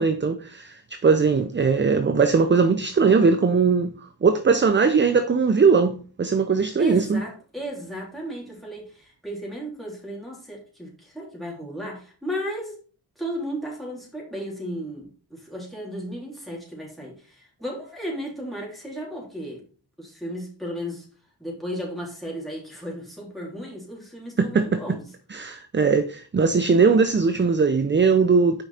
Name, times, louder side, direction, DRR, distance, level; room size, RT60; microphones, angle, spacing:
voice 1, 0.0-3.9 4.2-7.2 24.4-25.0 25.3-28.6, right 5 dB, 25° right, 0.5 m, -20 dB
voice 2, 6.8-12.8 13.2-19.6 20.0-21.1 21.4-25.0, equal, ahead, 3.4 m, -34 dB
5.9 x 5.1 x 4.2 m
cardioid pair, 65°, 42 cm